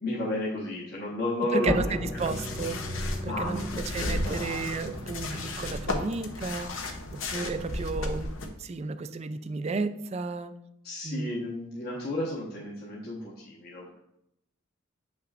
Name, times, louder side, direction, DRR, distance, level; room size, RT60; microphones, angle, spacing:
voice 1, 0.0-2.1 3.2-3.6 4.0-5.0 10.8-14.0, left 1 dB, 50° left, -6 dB, 1.2 m, -33 dB
voice 2, 1.4-10.6 11.0-11.3, right 4 dB, 30° right, 11 dB, 0.3 m, -33 dB
sound 1, 1.6-6.4, left 1 dB, 15° left, 0.7 m, -37 dB
sound 2, 2.2-8.5, left 2 dB, 75° left, 0.8 m, -34 dB
7.8 x 5.9 x 2.5 m, 0.81 s
head